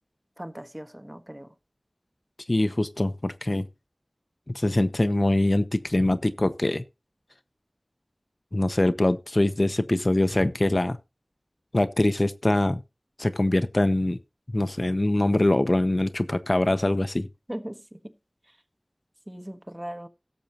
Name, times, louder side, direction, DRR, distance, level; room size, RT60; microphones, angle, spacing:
voice 1, 0.4-1.5 17.5-18.0 19.3-20.1, equal, 20° right, 1.2 m, -38 dB
voice 2, 2.5-3.7 4.5-6.8 8.5-11.0 11.7-12.8 13.2-14.2 14.5-17.3, left 1 dB, 45° left, 0.8 m, -23 dB
17.5 x 7.1 x 2.9 m
wide cardioid pair, 45°, 0 cm